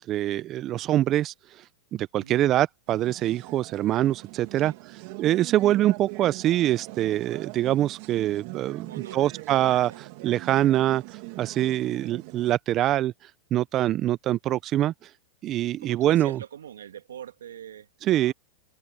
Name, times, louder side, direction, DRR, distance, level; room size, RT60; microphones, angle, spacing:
voice 1, 0.0-4.7 5.2-8.9 9.1-15.1 15.4-16.4 18.0-18.3, right 13 dB, 35° right, 0.5 m, -24 dB
sound 1, 2.9-12.5, right 26 dB, 55° right, 1.6 m, -42 dB
voice 2, 8.9-9.5 9.9-10.0 15.8-18.3, right 9 dB, 85° right, 2.3 m, -43 dB
hypercardioid pair, 115°, 0 cm